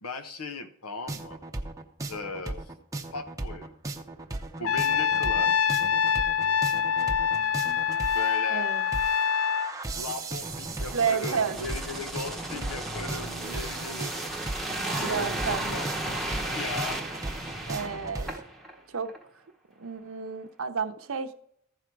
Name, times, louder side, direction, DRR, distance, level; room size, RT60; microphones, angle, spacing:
voice 1, 0.0-1.4 2.1-2.6 3.1-3.8 4.6-5.6 8.1-8.7 10.0-14.2 15.0-15.9 16.2-17.0, left 3 dB, 85° left, 1.1 m, -38 dB
sound 1, 1.1-18.4, right 2 dB, 15° right, 0.7 m, -37 dB
Trumpet, 4.6-9.7, left 7 dB, 65° left, 0.4 m, -25 dB
voice 2, 8.5-8.8 10.9-11.6 15.0-15.6 17.7-18.3 18.9-19.1 19.8-21.3, right 6 dB, 65° right, 0.7 m, -30 dB
sound 2, 10.4-18.7 19.1-19.2, right 1 dB, ahead, 1.1 m, -34 dB
14.5 x 5.0 x 4.6 m
head